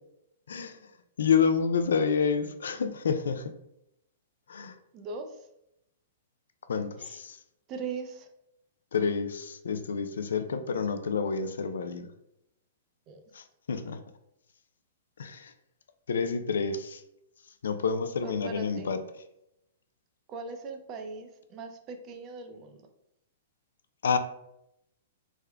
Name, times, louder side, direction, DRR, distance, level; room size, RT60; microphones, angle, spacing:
voice 1, 0.5-0.8 1.2-3.5 4.5-4.7 6.7-7.4 8.9-12.1 13.3-14.0 15.2-15.5 16.1-17.0 17.6-19.0 24.0-24.2, left 6 dB, 85° left, 0.3 m, -28 dB
voice 2, 4.9-5.5 7.0-7.2 7.7-8.3 13.1-13.2 18.2-18.9 20.3-22.9, right 4 dB, 35° right, 0.5 m, -40 dB
3.6 x 2.1 x 3.3 m
hypercardioid pair, 135°, 0 cm